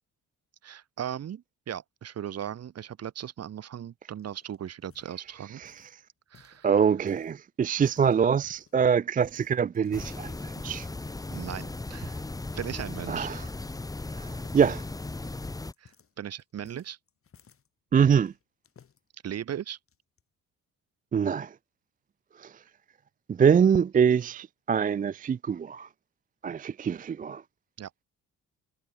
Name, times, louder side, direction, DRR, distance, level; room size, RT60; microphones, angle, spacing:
voice 1, 0.6-5.6 6.3-6.7 11.3-12.2 12.5-13.3 15.8-15.9 16.2-17.0 19.2-19.8 27.8-27.9, right 10 dB, 55° right, 1.6 m, -37 dB
sound 1, 4.1-6.0 6.3-7.3 7.7-8.8 9.2-10.2 10.6-10.8 11.3-11.6 12.1-12.4 12.9-13.1 13.4-14.0 14.3-17.7 18.1-19.0 19.7-20.2, left 7 dB, 45° left, 3.5 m, -59 dB
voice 2, 6.6-10.4 10.6-10.9 13.1-13.5 14.2-14.8 17.9-18.3 21.1-21.5 22.4-22.5 23.3-25.9 26.4-27.4, right 7 dB, 30° right, 0.4 m, -24 dB
sound 2, 9.9-15.7, left 2 dB, 10° left, 0.9 m, -37 dB
cardioid pair, 90°, 30 cm